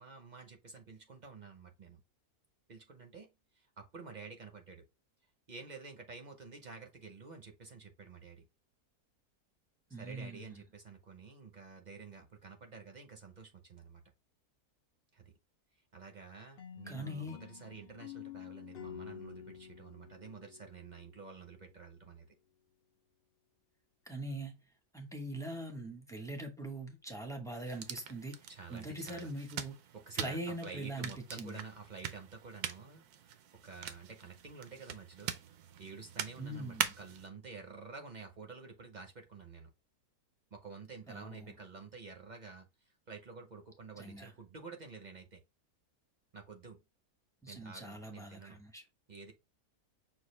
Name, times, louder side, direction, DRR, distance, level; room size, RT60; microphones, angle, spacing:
voice 1, 0.0-2.0 2.7-3.3 3.5-4.8 5.5-8.4 9.9-14.0 15.1-15.3 15.9-22.3 28.5-29.3 29.9-33.3 33.6-35.3 35.8-39.7 40.5-42.7 43.1-45.4 46.3-46.8 47.5-48.6 49.1-49.3, right 4 dB, 45° right, 0.6 m, -50 dB
voice 2, 9.9-10.6 16.9-17.4 24.1-24.6 24.9-29.7 30.1-31.6 36.4-36.9 41.1-41.6 44.0-44.3 47.4-48.8, right 1 dB, 5° left, 0.5 m, -42 dB
sound 1, 16.6-21.5, left 9 dB, 75° left, 0.5 m, -49 dB
sound 2, 27.7-37.3, right 9 dB, 85° right, 1.2 m, -43 dB
6.2 x 2.4 x 3.2 m
omnidirectional pair, 1.6 m